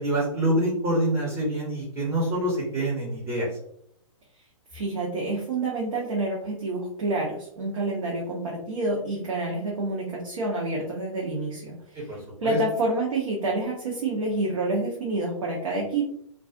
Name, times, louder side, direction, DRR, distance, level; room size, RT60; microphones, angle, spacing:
voice 1, 0.0-3.5 11.9-12.6, right 1 dB, 15° right, -4 dB, 0.7 m, -26 dB
voice 2, 4.7-12.0 12.4-16.0, right 2 dB, 65° right, -3 dB, 0.7 m, -28 dB
2.4 x 2.3 x 2.4 m, 0.69 s
figure-of-eight pair, 125°, 18 cm